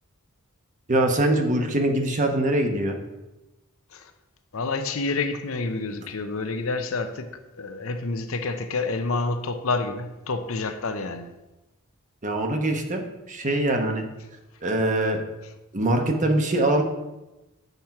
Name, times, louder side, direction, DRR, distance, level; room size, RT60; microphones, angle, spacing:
voice 1, 0.9-3.0 12.2-14.1 14.6-15.2 15.7-16.8, right 1 dB, 35° right, 1.0 m, -23 dB
voice 2, 4.5-11.3, left 3 dB, 70° left, 0.7 m, -28 dB
8.1 x 4.4 x 5.8 m
head